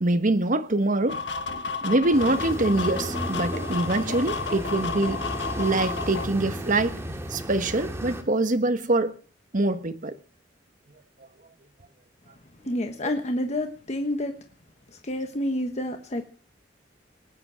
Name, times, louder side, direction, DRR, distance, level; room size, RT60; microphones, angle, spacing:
voice 1, 0.0-1.2 1.8-5.2 5.6-7.0 7.3-9.1 9.5-10.1, right 2 dB, 45° right, 1.3 m, -24 dB
sound 1, 1.1-6.3, left 5 dB, 70° left, 1.4 m, -32 dB
sound 2, 2.1-8.2, right 1 dB, 15° right, 2.2 m, -34 dB
voice 2, 12.6-14.3 15.0-16.2, left 1 dB, 40° left, 1.2 m, -28 dB
19.0 x 9.8 x 6.2 m
head